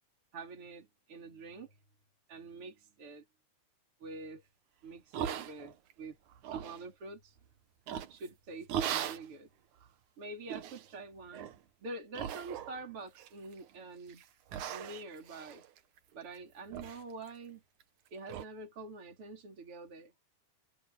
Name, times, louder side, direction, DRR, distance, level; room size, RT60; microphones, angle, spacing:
voice 1, 0.3-1.8 2.3-3.2 4.0-4.5 4.8-6.2 6.5-7.4 8.1-9.5 10.2-11.5 11.8-14.2 14.7-15.6 16.1-17.6 18.1-20.1, right 3 dB, 50° right, 4.4 m, -46 dB
sound 1, 5.1-5.9 6.3-6.8 7.9-8.3 8.7-9.3 9.8-9.9 10.5-10.9 11.3-11.6 12.1-12.9 13.2-13.7 14.1-14.2 14.5-16.4 16.7-17.0 17.3-17.4 17.8-17.9 18.3-18.5, right 10 dB, 85° right, 2.7 m, -39 dB
omnidirectional pair, 3.3 m